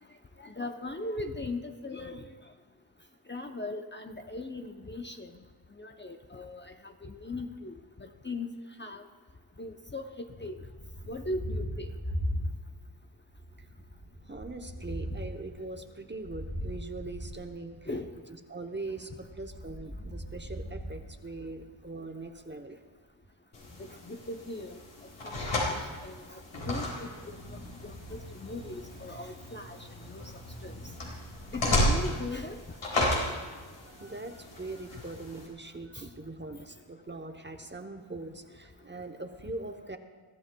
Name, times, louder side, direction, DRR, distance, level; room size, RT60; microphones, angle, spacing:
voice 1, 0.4-2.3 3.3-5.3 5.8-7.7 8.0-8.5 8.8-9.0 9.6-10.1 10.4-10.6 11.1-11.9 17.9-18.1 23.8-24.8 25.2-26.4 26.7-27.1 27.5-30.2 30.6-30.7 31.5-32.6 35.9-36.0, left 2 dB, 25° left, 5 dB, 0.6 m, -39 dB
Thunder, 10.5-13.0 13.3-18.1 19.2-21.8, equal, 40° left, 3.5 m, -39 dB
voice 2, 14.3-17.9 18.5-22.8 33.5-40.0, right 2 dB, 20° right, 5 dB, 0.8 m, -41 dB
sound 1, 23.5-35.5, left 1 dB, 75° left, 4.1 m, -34 dB
22.0 x 14.0 x 2.3 m, 1.5 s
wide cardioid pair, 95°, 49 cm